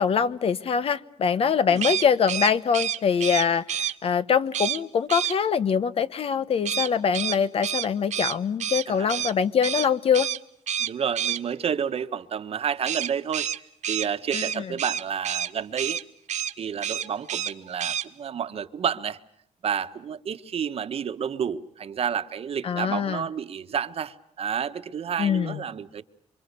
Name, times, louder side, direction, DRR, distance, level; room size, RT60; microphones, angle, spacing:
voice 1, 0.0-10.3 14.3-14.6 22.6-23.2 25.2-25.6, left 7 dB, 50° left, 1.0 m, -24 dB
sound 1, 1.8-3.9 4.5-4.8 5.1-5.4 6.7-9.3 9.6-9.9 10.1-10.4 10.7-11.4 12.9-15.5 15.8-16.0 16.3-16.5 16.8-17.5 17.8-18.0, right 9 dB, 70° right, 1.6 m, -28 dB
voice 2, 10.8-13.5 13.9-16.0 16.6-19.2 19.6-26.0, right 7 dB, 50° right, 1.4 m, -30 dB
28.0 x 24.5 x 6.8 m
cardioid pair, 120°, 13 cm